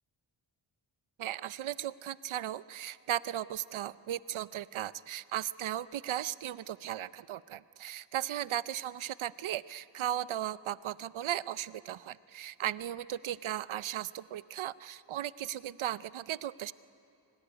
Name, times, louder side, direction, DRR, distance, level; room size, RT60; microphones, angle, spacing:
voice 1, 1.2-16.7, right 12 dB, 85° right, 17 dB, 0.6 m, -36 dB
24.5 x 19.0 x 9.9 m, 2.6 s
wide cardioid pair, 170°, 47 cm